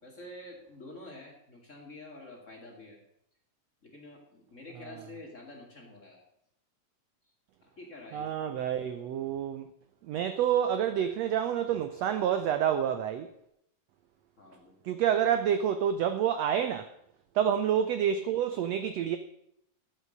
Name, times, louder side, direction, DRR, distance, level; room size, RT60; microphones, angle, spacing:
voice 1, 0.0-3.0 3.8-6.2 7.6-8.5 14.4-15.0, left 2 dB, 25° left, 2.4 m, -48 dB
voice 2, 8.1-9.7 10.0-13.3 14.8-16.9 17.3-19.2, right 9 dB, 75° right, 1.5 m, -28 dB
13.5 x 8.1 x 6.5 m
omnidirectional pair, 3.8 m